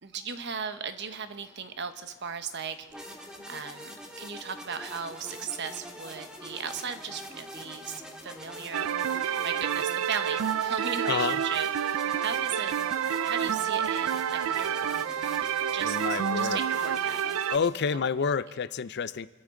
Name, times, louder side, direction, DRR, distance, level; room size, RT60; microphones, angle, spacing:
voice 1, 0.0-12.7 13.2-15.0 15.7-17.2 17.9-18.1, right 6 dB, 55° right, 9 dB, 1.1 m, -37 dB
sound 1, 0.8-18.5, left 3 dB, 80° left, 2.9 m, -59 dB
sound 2, 2.9-17.7, equal, 5° right, 2.0 m, -44 dB
sound 3, 8.7-17.6, right 9 dB, 80° right, 0.4 m, -29 dB
voice 2, 11.1-11.4 15.8-16.6 17.5-19.3, left 6 dB, 55° left, 16 dB, 0.5 m, -29 dB
27.5 x 13.5 x 3.8 m, 1.3 s
head